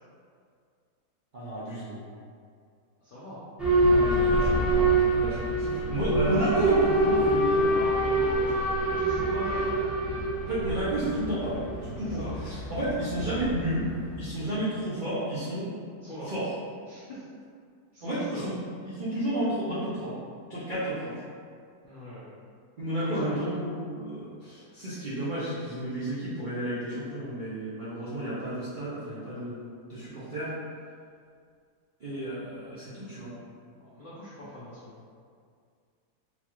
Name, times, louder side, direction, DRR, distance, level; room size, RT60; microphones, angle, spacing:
voice 1, 1.3-2.0 3.9-7.8 10.4-13.9 14.2-15.7 16.2-16.5 18.0-18.5 18.8-20.2 20.5-21.2 22.8-30.5 32.0-33.3, right 1 dB, 55° right, -11 dB, 0.5 m, -31 dB
voice 2, 3.0-3.4 7.7-9.9 12.0-12.4 16.0-16.3 16.9-17.2 17.9-18.5 21.8-22.3 23.0-23.4 33.7-35.0, left 1 dB, 65° left, -10 dB, 0.5 m, -40 dB
Boat Water vehicle / Alarm, 3.6-14.2, right 2 dB, ahead, 0.7 m, -26 dB
4.0 x 2.4 x 3.0 m, 2.2 s
omnidirectional pair, 1.7 m